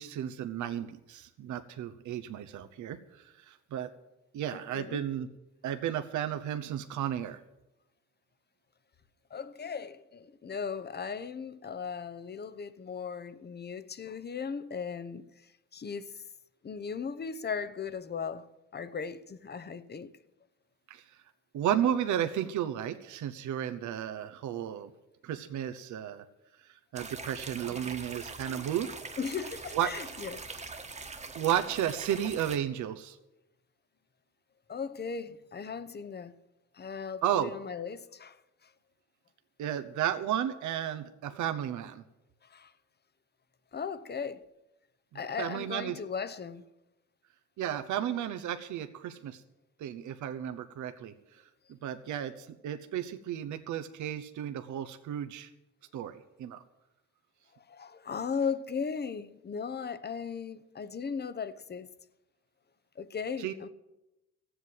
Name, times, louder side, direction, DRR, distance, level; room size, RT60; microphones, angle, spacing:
voice 1, 0.0-3.9 4.3-5.3 5.6-7.4 20.9-21.0 21.5-24.9 25.2-26.2 26.6-28.9 29.7-29.9 31.3-33.2 37.2-37.5 39.6-42.0 45.1-46.0 47.6-49.4 49.8-51.1 51.7-55.5 55.9-56.6 63.4-63.5, right 10 dB, 75° right, 0.9 m, -33 dB
voice 2, 4.5-5.0 9.3-15.2 15.7-16.2 16.6-18.5 18.7-20.1 27.7-27.9 29.2-30.5 34.7-36.3 36.7-38.4 38.6-38.7 42.4-42.7 43.7-44.4 45.1-46.6 57.7-61.9 63.0-63.7, left 6 dB, 35° left, 0.9 m, -37 dB
sound 1, 26.9-32.6, right 3 dB, 25° right, 1.4 m, -42 dB
14.5 x 8.1 x 7.9 m
cardioid pair, 90°, 30 cm